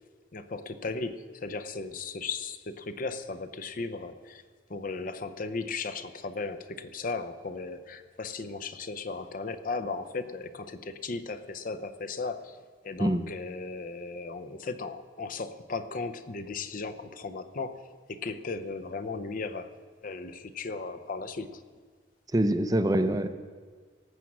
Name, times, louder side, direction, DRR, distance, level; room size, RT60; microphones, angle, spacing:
voice 1, 0.3-4.4 4.7-21.6, left 3 dB, 45° left, 11 dB, 0.6 m, -36 dB
voice 2, 22.3-23.3, right 1 dB, 20° right, 10 dB, 0.5 m, -25 dB
18.5 x 7.3 x 6.1 m, 1.5 s
head